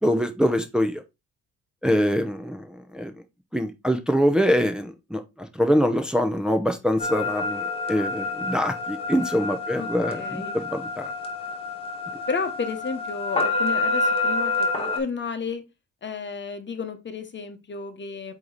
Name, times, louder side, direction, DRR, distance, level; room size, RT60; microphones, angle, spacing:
voice 1, 0.0-1.0 1.8-3.1 3.5-11.1, equal, 5° right, 0.8 m, -24 dB
sound 1, 7.0-15.0, left 3 dB, 20° left, 2.0 m, -28 dB
voice 2, 9.8-10.6 12.3-15.6 16.0-18.3, left 5 dB, 40° left, 1.2 m, -32 dB
8.2 x 3.2 x 4.0 m
cardioid pair, 90°, 30 cm